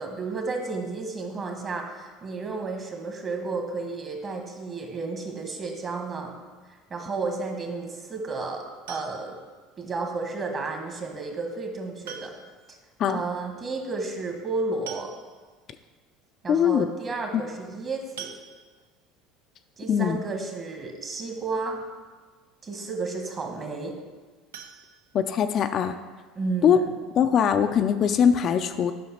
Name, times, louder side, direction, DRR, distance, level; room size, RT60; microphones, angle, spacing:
voice 1, 0.0-6.3 6.9-9.3 9.8-12.3 12.7-12.8 13.1-15.1 16.4-18.3 19.8-21.8 22.6-23.9 26.3-26.9, right 3 dB, 35° right, 3 dB, 1.6 m, -32 dB
sound 1, 8.9-9.5 11.0-11.1 12.0-12.7 13.0-13.1 13.4-13.5 14.5-14.6 14.9-15.6 16.1-16.2 16.6-16.7 18.2-19.0 24.5-25.7 26.1-26.2 26.6-26.7 27.1-27.2, right 7 dB, 80° right, 0.6 m, -43 dB
voice 2, 16.5-16.9 17.3-17.4 19.9-20.2 25.1-25.9 26.6-26.8 27.1-28.9, left 8 dB, 45° left, 8 dB, 0.4 m, -21 dB
7.6 x 5.6 x 4.3 m, 1.4 s
hypercardioid pair, 70°, 0 cm